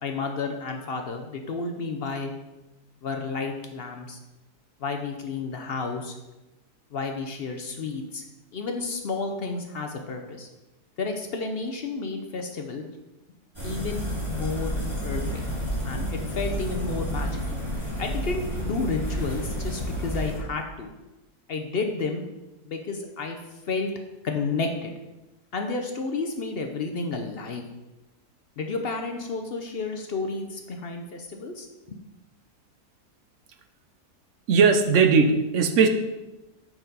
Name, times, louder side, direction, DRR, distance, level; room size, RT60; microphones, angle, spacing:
voice 1, 0.0-2.3 3.0-4.2 4.8-6.2 6.9-8.2 8.5-10.5 11.0-12.8 13.6-14.7 15.0-15.4 15.8-17.6 18.0-20.9 21.5-22.2 22.7-23.4 23.7-23.9 24.2-24.9 25.5-27.7 28.6-32.0, left 4 dB, 60° left, 4 dB, 0.6 m, -31 dB
sound 1, 13.5-20.4, equal, 15° right, 2.5 m, -30 dB
voice 2, 34.5-35.9, right 5 dB, 60° right, 7 dB, 0.8 m, -18 dB
6.6 x 5.9 x 4.0 m, 1.0 s
omnidirectional pair, 1.7 m